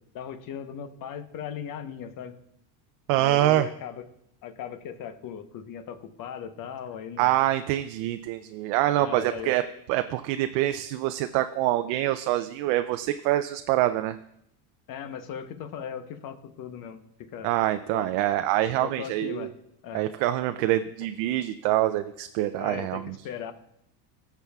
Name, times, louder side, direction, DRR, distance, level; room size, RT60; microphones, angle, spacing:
voice 1, 0.0-2.4 3.2-4.0 4.4-7.4 9.0-9.6 14.9-17.6 17.9-18.1 18.8-19.5 19.8-20.0 22.6-23.5, left 8 dB, 40° left, 9 dB, 1.0 m, -38 dB
voice 2, 3.1-3.7 7.2-9.6 9.9-14.2 17.4-19.5 19.9-23.2, right 14 dB, 65° right, 8 dB, 0.6 m, -25 dB
18.0 x 6.9 x 2.3 m, 0.77 s
supercardioid pair, 125°, 49 cm